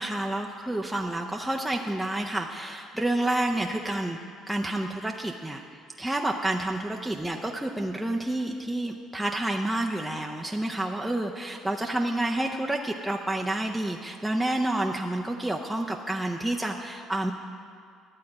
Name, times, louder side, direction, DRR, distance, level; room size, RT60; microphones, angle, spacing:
voice 1, 0.0-4.2 4.5-5.6 6.0-17.3, right 1 dB, 5° right, 0 dB, 0.5 m, -29 dB
11.5 x 7.5 x 4.8 m, 2.3 s
supercardioid pair, 95°, 0 cm